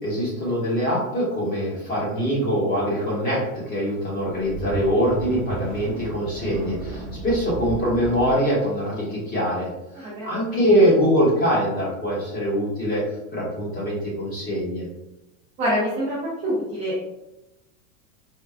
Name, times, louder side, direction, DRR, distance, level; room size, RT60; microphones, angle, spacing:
voice 1, 0.0-9.7 10.0-13.0 13.3-14.9, equal, 20° left, -5 dB, 1.2 m, -23 dB
sound 1, 4.2-8.4, right 2 dB, 35° right, 0.8 m, -34 dB
voice 2, 10.0-10.3 15.6-16.2 16.4-17.1, equal, 15° right, -7 dB, 0.4 m, -25 dB
4.5 x 2.2 x 2.4 m, 0.93 s
supercardioid pair, 160°, 41 cm